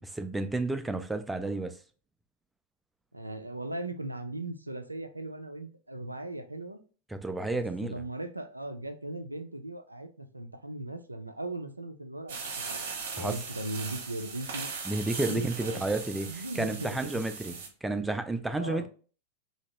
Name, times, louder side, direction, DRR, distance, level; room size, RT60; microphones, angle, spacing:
voice 1, 0.0-1.7 7.1-8.0 13.2-13.4 14.9-17.5 17.8-18.9, right 2 dB, 5° right, 0.4 m, -31 dB
voice 2, 3.1-6.8 7.5-14.7 15.3-15.8 16.3-17.2 18.6-18.9, right 1 dB, 85° right, 0.4 m, -38 dB
sound 1, 12.3-17.7, right 5 dB, 60° right, 0.7 m, -39 dB
2.9 x 2.8 x 2.8 m
figure-of-eight pair, 90°, 0 cm